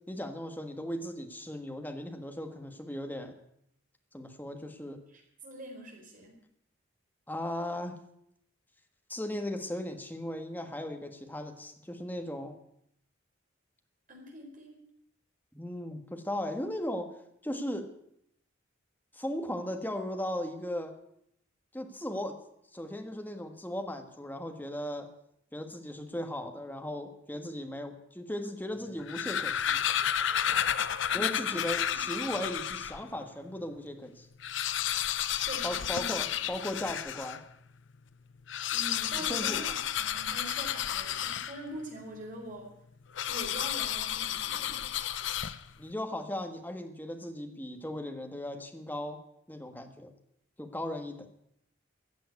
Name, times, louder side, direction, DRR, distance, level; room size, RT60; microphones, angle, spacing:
voice 1, 0.1-3.3 4.1-5.0 7.3-8.0 9.1-12.6 15.5-17.1 17.4-17.9 19.1-20.9 21.7-22.4 22.7-25.1 25.5-29.8 31.1-34.3 35.6-37.4 39.2-39.6 45.8-49.2 49.5-50.1 50.6-51.3, left 1 dB, 10° left, 5 dB, 1.4 m, -37 dB
voice 2, 5.1-6.4 14.1-14.8 31.1-31.6 31.9-32.0 35.5-36.4 38.7-42.7 43.3-44.8, right 1 dB, 40° right, 1 dB, 4.5 m, -44 dB
sound 1, 28.9-33.0 33.6-33.7 33.9-34.0 34.3-37.4 38.4-41.8 43.1-45.8, left 10 dB, 65° left, 0.6 m, -32 dB
15.0 x 7.7 x 9.5 m, 0.73 s
head